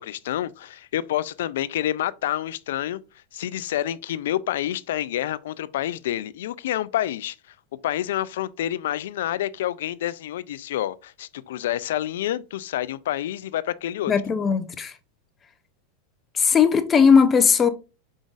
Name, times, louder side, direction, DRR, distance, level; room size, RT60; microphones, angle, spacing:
voice 1, 0.0-3.0 3.3-7.4 7.8-14.1, left 12 dB, 80° left, 0.3 m, -28 dB
voice 2, 14.1-14.9 16.3-17.7, left 6 dB, 25° left, 0.6 m, -18 dB
5.1 x 3.8 x 2.4 m
supercardioid pair, 125°, 0 cm